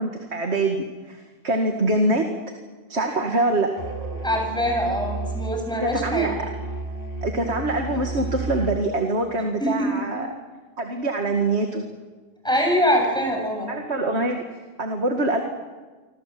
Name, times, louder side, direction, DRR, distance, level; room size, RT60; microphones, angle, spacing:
voice 1, 0.0-2.3 2.9-3.7 5.8-6.6 7.2-10.3 10.8-11.8 13.7-15.4, right 2 dB, 90° right, 3 dB, 2.5 m, -24 dB
Musical instrument, 3.8-8.9, right 3 dB, 55° right, 3.2 m, -32 dB
voice 2, 4.2-6.3 9.6-9.9 12.4-13.7, equal, 5° left, 1 dB, 7.8 m, -23 dB
28.5 x 25.0 x 7.8 m, 1.4 s
omnidirectional pair, 1.1 m